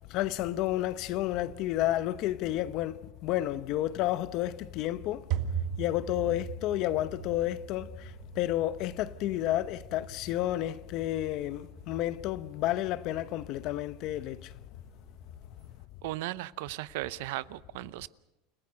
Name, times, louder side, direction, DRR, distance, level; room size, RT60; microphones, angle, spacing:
voice 1, 0.1-5.2 5.8-14.5, left 14 dB, 50° left, 0.8 m, -31 dB
sound 1, 4.4-15.8, right 9 dB, 55° right, 1.7 m, -41 dB
voice 2, 16.0-18.1, right 17 dB, 70° right, 0.7 m, -36 dB
29.5 x 15.0 x 6.5 m
supercardioid pair, 140°, 0 cm